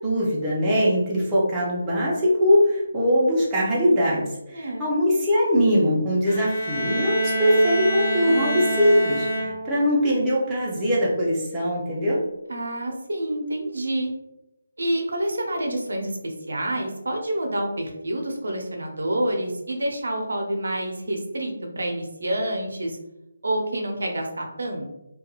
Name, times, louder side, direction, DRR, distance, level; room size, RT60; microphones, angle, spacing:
voice 1, 0.0-12.2, equal, 15° right, -7 dB, 0.6 m, -21 dB
voice 2, 4.5-4.8 12.5-14.1 14.8-23.0 23.4-24.9, right 1 dB, 80° right, 2 dB, 0.6 m, -28 dB
Bowed string instrument, 6.3-9.9, equal, 35° left, 0.5 m, -27 dB
2.8 x 2.3 x 2.3 m, 0.89 s
figure-of-eight pair, 155°, 0 cm